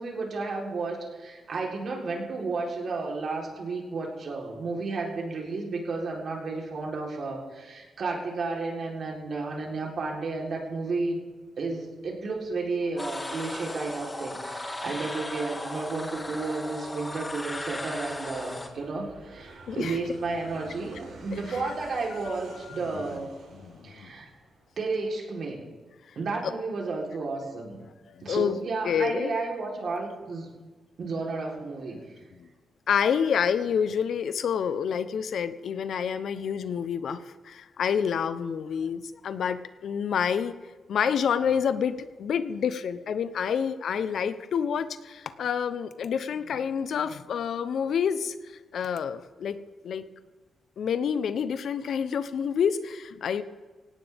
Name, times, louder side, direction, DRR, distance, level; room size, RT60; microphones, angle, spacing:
voice 1, 0.0-11.2 11.6-23.3 23.8-24.3 24.8-25.6 26.2-27.8 28.2-30.5 31.0-32.1, right 3 dB, 60° right, 0 dB, 3.8 m, -32 dB
Aircraft, 12.0-25.2, right 2 dB, 85° right, 6.2 m, -51 dB
sound 1, 13.0-18.7, left 1 dB, 15° left, 2.0 m, -36 dB
voice 2, 19.7-20.0 21.3-21.7 22.1-24.1 26.4-26.5 28.1-28.6 28.8-29.4 32.3-32.5 32.9-40.5 40.9-49.6 49.8-50.0 50.8-53.4, left 7 dB, 70° left, 12 dB, 0.9 m, -28 dB
17.5 x 17.5 x 3.6 m, 1.4 s
cardioid pair, 95°, 0 cm